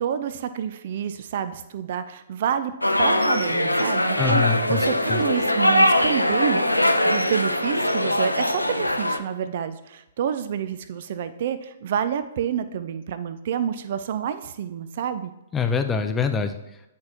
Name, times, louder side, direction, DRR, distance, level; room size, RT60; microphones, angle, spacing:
voice 1, 0.0-2.7 3.0-15.3, right 8 dB, 50° right, 11 dB, 0.4 m, -28 dB
sound 1, 2.8-9.2, left 1 dB, 85° left, 0.5 m, -21 dB
voice 2, 4.2-5.2 15.5-16.5, left 6 dB, 15° left, 7 dB, 0.5 m, -24 dB
9.2 x 4.5 x 2.8 m, 0.91 s
figure-of-eight pair, 115°, 0 cm